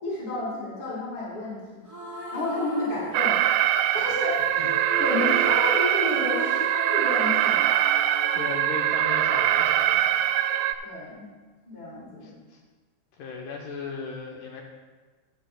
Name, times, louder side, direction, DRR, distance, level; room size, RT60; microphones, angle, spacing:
voice 1, 0.0-3.4 3.9-7.7 10.8-11.3 11.6-12.3, left 1 dB, 25° left, -6 dB, 2.7 m, -31 dB
sound 1, 1.9-3.6 4.3-10.4, right 1 dB, 5° right, 2.4 m, -37 dB
Alarm, 3.1-10.7, right 12 dB, 90° right, 2.8 m, -23 dB
voice 2, 8.4-10.1 12.2-12.6 13.2-14.6, left 4 dB, 75° left, 0 dB, 2.0 m, -37 dB
15.0 x 10.5 x 2.4 m, 1.3 s
omnidirectional pair, 4.9 m